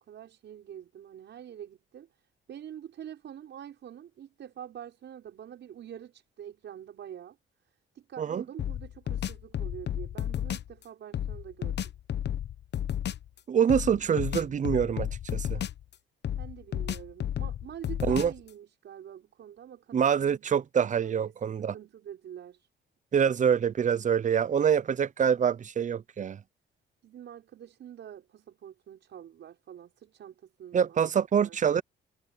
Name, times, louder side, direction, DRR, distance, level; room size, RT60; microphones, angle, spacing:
voice 1, 0.0-2.1 2.5-7.4 7.9-11.8 16.4-20.4 21.0-22.7 27.0-31.0 31.4-31.6, right 10 dB, 65° right, 6.2 m, -46 dB
sound 1, 8.6-10.7 11.1-13.3 13.7-15.9 16.2-18.5, left 10 dB, 60° left, 1.1 m, -33 dB
voice 2, 13.5-15.6 18.1-18.3 19.9-21.7 23.1-26.4 30.7-31.8, right 8 dB, 40° right, 0.6 m, -25 dB
cardioid pair, 90°, 20 cm